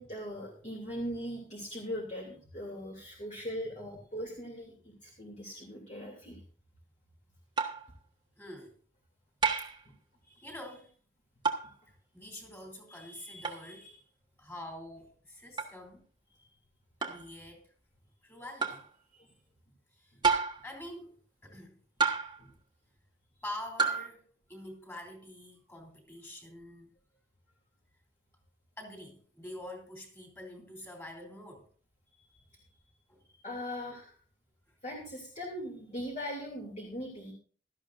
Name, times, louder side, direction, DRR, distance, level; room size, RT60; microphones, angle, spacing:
voice 1, 0.0-6.4 16.3-16.4 19.1-19.3 22.4-22.5 32.1-32.6 33.4-34.1 34.8-37.3, equal, 35° left, 2.8 m, -40 dB
sound 1, 7.6-7.9 9.4-9.8 11.4-11.7 13.4-13.6 15.6-15.7 17.0-17.3 18.6-18.9 20.2-20.7 22.0-22.4 23.8-24.1, right 5 dB, 25° right, 1.4 m, -29 dB
voice 2, 8.4-8.8 10.2-10.9 11.9-14.0 14.4-16.0 17.0-17.7 18.2-18.8 19.9-20.2 20.6-21.8 23.4-26.9 28.8-31.7 33.1-33.2, left 1 dB, 15° left, 3.3 m, -46 dB
17.0 x 13.0 x 2.6 m
head